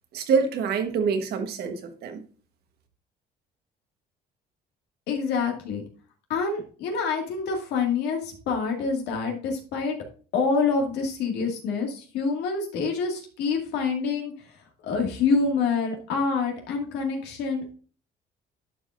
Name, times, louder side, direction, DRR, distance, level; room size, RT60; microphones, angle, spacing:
voice 1, 0.1-2.2, right 5 dB, 70° right, 1.3 m, -26 dB
voice 2, 5.1-5.8 6.3-9.9 10.3-14.3 14.8-17.7, left 4 dB, 80° left, 2.1 m, -26 dB
11.5 x 4.8 x 2.5 m
cardioid pair, 110°, 17 cm